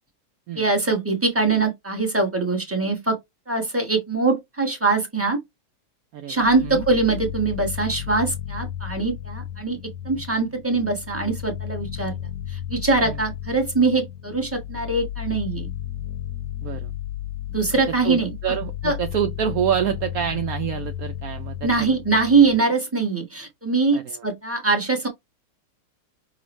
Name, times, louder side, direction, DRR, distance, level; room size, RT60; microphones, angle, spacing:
voice 1, 0.5-3.2 3.5-5.4 6.3-9.8 10.0-12.1 12.5-15.7 17.5-18.3 18.8-18.9 21.6-25.1, right 3 dB, 10° right, 0.9 m, -22 dB
voice 2, 6.1-6.8 13.0-13.2 16.6-16.9 17.9-22.0 23.9-24.2, right 9 dB, 75° right, 0.8 m, -27 dB
sound 1, 6.4-22.6, left 11 dB, 65° left, 1.1 m, -33 dB
6.0 x 2.4 x 3.1 m
omnidirectional pair, 2.0 m